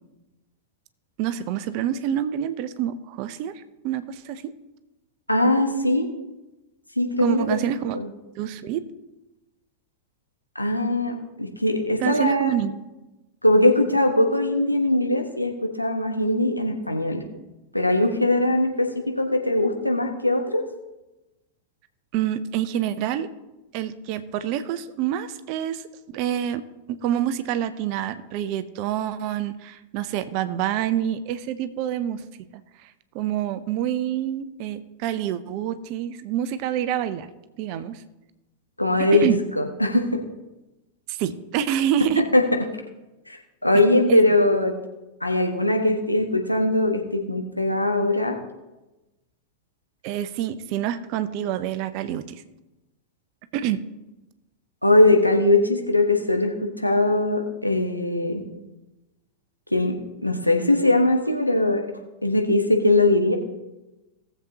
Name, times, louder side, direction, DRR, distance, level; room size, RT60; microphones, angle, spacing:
voice 1, 1.2-4.5 7.2-8.0 8.4-8.8 12.0-12.8 22.1-23.3 23.7-25.8 26.1-32.2 32.8-37.3 37.6-38.0 39.0-39.4 41.1-42.2 43.7-43.8 44.1-44.2 50.0-52.4 53.5-53.8, right 10 dB, 45° right, 13 dB, 0.6 m, -27 dB
voice 2, 5.3-6.1 7.0-7.6 7.9-8.1 10.5-12.5 13.4-17.2 17.7-20.6 38.8-39.3 39.6-40.2 42.3-42.5 43.3-43.4 43.6-44.7 45.2-48.4 54.8-58.4 59.7-60.0 60.2-61.8 62.2-63.3, left 2 dB, 85° left, 3 dB, 1.2 m, -21 dB
18.0 x 7.4 x 2.8 m, 1.0 s
figure-of-eight pair, 90°, 0 cm